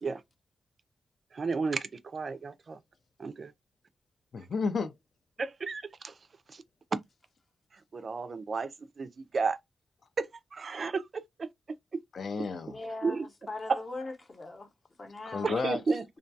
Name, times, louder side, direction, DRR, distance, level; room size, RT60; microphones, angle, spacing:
voice 1, 1.3-2.8 3.2-3.5 5.4-6.1 6.5-6.6 7.9-8.7 9.0-9.6 10.2-11.5 11.9-12.0 13.0-13.3 13.7-13.8 15.4-16.0, right 4 dB, 50° right, 0.3 m, -32 dB
voice 2, 4.3-5.0 12.1-12.8 15.3-16.0, left 4 dB, 60° left, 0.3 m, -32 dB
voice 3, 12.6-14.7 15.0-15.5, left 2 dB, 35° left, 0.7 m, -40 dB
2.2 x 2.2 x 2.6 m
cardioid pair, 95°, 0 cm